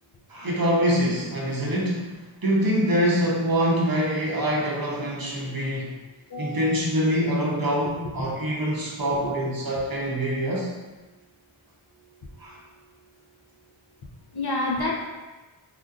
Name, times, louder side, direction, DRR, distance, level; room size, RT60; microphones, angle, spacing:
voice 1, 0.3-2.1 2.4-5.9 6.4-10.7 12.4-12.6, equal, 45° right, -3 dB, 0.7 m, -24 dB
voice 2, 6.3-6.7 9.2-9.3 14.3-15.0, left 2 dB, 50° left, -2 dB, 0.7 m, -29 dB
3.6 x 2.5 x 2.4 m, 1.2 s
wide cardioid pair, 45°, 49 cm